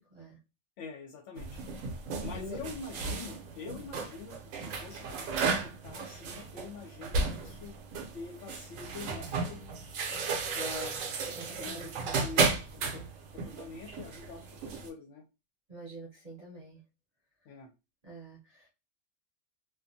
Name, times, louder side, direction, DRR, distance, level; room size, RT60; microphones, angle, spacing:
voice 1, 0.8-1.6 2.2-9.6 10.6-11.0 11.6-13.0 13.3-15.2 17.5-17.7, left 4 dB, 65° left, 2 dB, 0.8 m, -45 dB
sound 1, 1.3-14.9, right 4 dB, 70° right, 0.9 m, -34 dB
voice 2, 11.4-11.9 12.9-13.1 15.7-16.8 18.0-18.7, right 1 dB, 35° right, -5 dB, 0.7 m, -46 dB
2.5 x 2.3 x 2.6 m, 0.28 s
omnidirectional pair, 1.5 m